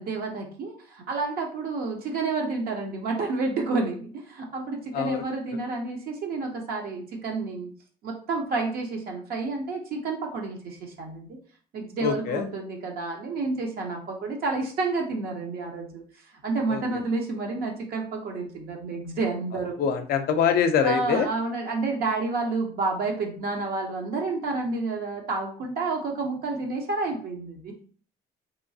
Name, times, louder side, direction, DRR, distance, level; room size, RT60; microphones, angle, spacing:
voice 1, 0.0-7.7 8.0-11.4 11.7-16.0 16.4-19.9 20.8-27.8, right 3 dB, 65° right, 1 dB, 0.6 m, -30 dB
voice 2, 12.0-12.4 16.7-16.8 19.8-21.3, left 7 dB, 65° left, 8 dB, 0.4 m, -24 dB
2.9 x 2.3 x 2.6 m, 0.43 s
cardioid pair, 110°, 17 cm